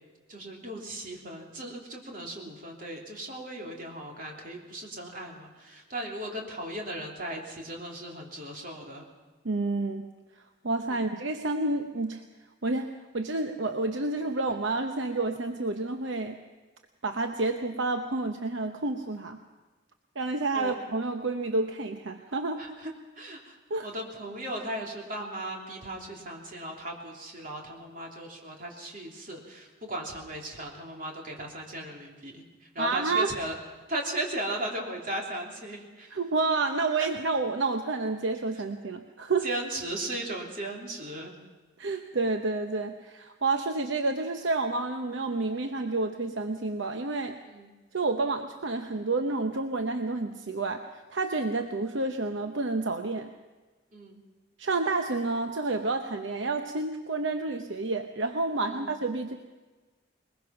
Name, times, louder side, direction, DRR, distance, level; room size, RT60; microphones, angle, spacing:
voice 1, 0.3-9.1 10.9-11.1 20.5-20.7 22.6-23.6 23.8-33.6 33.9-36.2 37.0-37.1 39.4-41.3 41.9-42.0 47.4-47.7 53.9-54.2 58.7-58.9, right 1 dB, 45° right, 0 dB, 3.2 m, -37 dB
voice 2, 9.4-10.1 10.6-12.2 12.6-16.4 17.0-19.4 20.2-22.6 23.7-23.9 32.8-33.3 36.1-39.5 41.8-47.4 47.9-50.8 51.1-53.3 54.6-59.4, right 3 dB, 70° right, 6 dB, 0.9 m, -29 dB
21.5 x 21.0 x 5.9 m, 1.3 s
head